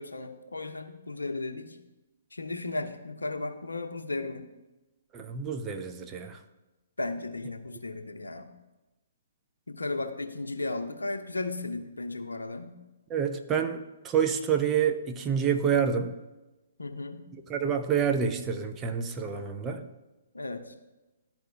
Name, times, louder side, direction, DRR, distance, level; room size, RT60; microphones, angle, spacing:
voice 1, 0.0-1.8 2.3-4.4 7.0-8.5 9.7-12.7 16.8-17.2 20.3-20.7, left 2 dB, 75° left, 6 dB, 0.7 m, -35 dB
voice 2, 5.1-6.4 13.1-16.1 17.5-19.8, right 7 dB, 15° right, 5 dB, 0.5 m, -28 dB
11.5 x 4.4 x 2.7 m, 1.1 s
figure-of-eight pair, 125°, 0 cm